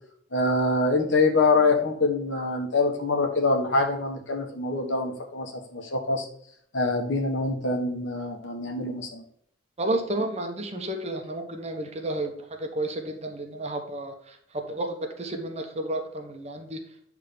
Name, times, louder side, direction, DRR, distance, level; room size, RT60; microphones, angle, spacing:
voice 1, 0.3-6.3 6.7-9.2, left 3 dB, 80° left, 3 dB, 1.3 m, -25 dB
voice 2, 9.8-12.3 12.6-14.1 14.5-16.8, right 1 dB, 35° right, 4 dB, 1.1 m, -31 dB
8.5 x 3.6 x 5.2 m, 0.66 s
head